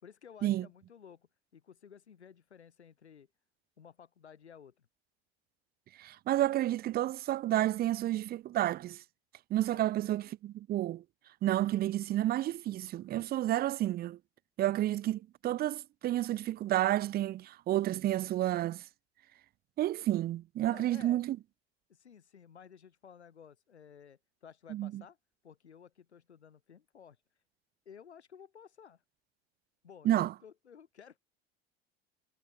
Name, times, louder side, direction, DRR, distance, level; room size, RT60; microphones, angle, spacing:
voice 1, 0.0-3.3 3.8-4.9 9.7-9.8 20.7-21.2 21.9-25.2 25.4-27.2 27.9-29.0 29.8-31.2, left 7 dB, 80° left, 3.6 m, -54 dB
voice 2, 6.0-9.0 9.5-11.0 11.4-14.2 14.6-18.8 19.8-21.4 24.7-25.0 30.0-30.3, right 14 dB, 30° right, 0.5 m, -30 dB
figure-of-eight pair, 75°, 33 cm